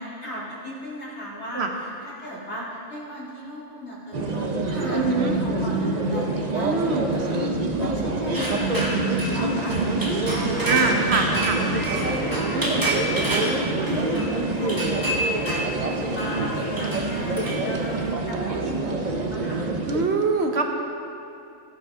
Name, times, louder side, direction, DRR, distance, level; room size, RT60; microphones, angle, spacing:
voice 1, 0.0-11.0 11.2-19.7, equal, 55° left, -6 dB, 2.6 m, -37 dB
sound 1, 4.1-20.1, right 2 dB, 40° right, 0.7 m, -26 dB
voice 2, 4.9-5.3 6.7-7.1 10.7-11.6 12.5-12.8 19.9-20.6, right 3 dB, 55° right, 3 dB, 1.2 m, -23 dB
sound 2, 8.3-18.1, right 1 dB, 15° right, 1.1 m, -30 dB
16.0 x 8.6 x 3.7 m, 2.6 s
omnidirectional pair, 1.4 m